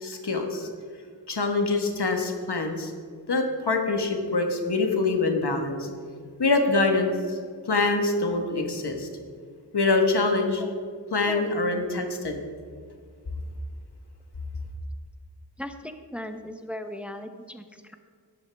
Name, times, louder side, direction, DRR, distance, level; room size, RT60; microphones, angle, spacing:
voice 1, 0.0-0.7 1.3-2.9 3.3-5.9 6.4-7.1 7.6-9.1 9.7-10.6 11.1-12.4, left 3 dB, 75° left, 4 dB, 1.4 m, -25 dB
voice 2, 15.6-17.9, left 1 dB, 5° right, 7 dB, 0.8 m, -37 dB
13.0 x 10.5 x 3.5 m, 2.1 s
wide cardioid pair, 50°, 40 cm